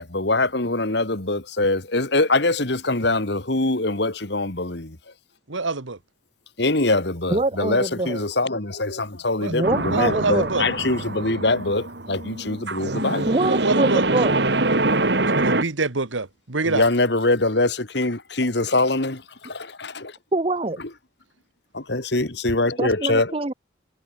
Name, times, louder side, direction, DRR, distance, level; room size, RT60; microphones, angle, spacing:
voice 1, 0.0-5.0 6.6-13.3 16.6-20.2 20.8-20.9 21.7-23.4, left 2 dB, 60° left, 2.1 m, -23 dB
voice 2, 5.5-6.0 9.4-9.5 9.9-10.6 13.5-14.0 15.3-16.9, right 3 dB, 85° right, 1.6 m, -26 dB
voice 3, 7.3-8.2 9.5-10.5 13.2-14.4 20.3-20.8 22.8-23.5, right 2 dB, 30° right, 0.7 m, -24 dB
sound 1, 9.6-15.6, right 2 dB, 60° right, 2.3 m, -24 dB
head